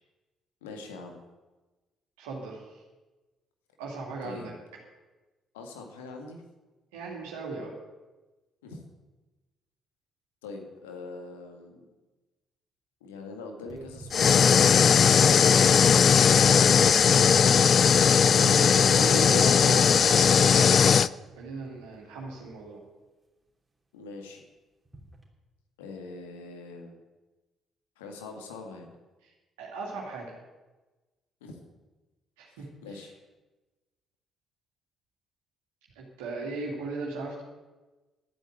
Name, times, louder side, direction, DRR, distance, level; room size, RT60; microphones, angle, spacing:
voice 1, 0.6-1.2 4.2-4.5 5.5-6.4 8.6-8.8 10.4-11.9 13.0-17.1 23.9-24.4 25.8-27.0 28.0-28.9 31.4-31.6 32.5-32.6 32.8-33.1, left 3 dB, 75° left, 3 dB, 1.9 m, -43 dB
voice 2, 2.2-2.8 3.8-4.5 6.9-7.7 18.0-20.9 21.4-22.8 29.6-30.3 32.4-33.0 35.9-37.4, right 3 dB, 75° right, -3 dB, 2.5 m, -37 dB
sound 1, 13.7-22.5 24.9-25.2, right 3 dB, 20° right, 3.2 m, -47 dB
sound 2, 14.1-21.1, left 7 dB, 45° left, 0.3 m, -19 dB
12.0 x 9.1 x 7.9 m, 1.2 s
figure-of-eight pair, 45°, 0 cm